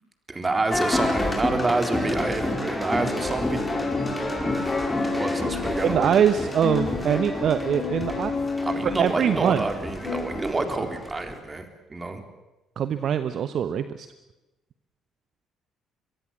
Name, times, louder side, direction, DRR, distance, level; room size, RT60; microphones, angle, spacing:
voice 1, 0.3-3.9 5.0-6.1 8.6-12.2, right 3 dB, 25° right, 6 dB, 3.9 m, -28 dB
sound 1, 0.7-11.4, left 2 dB, 15° left, 4.9 m, -29 dB
sound 2, 3.7-6.2 6.6-9.1 10.0-10.2, left 4 dB, 45° left, 7.1 m, -31 dB
voice 2, 5.8-8.3 8.8-9.6 12.8-14.1, right 8 dB, 55° right, 12 dB, 1.0 m, -23 dB
23.0 x 22.5 x 7.4 m, 1.0 s
figure-of-eight pair, 50°, 0 cm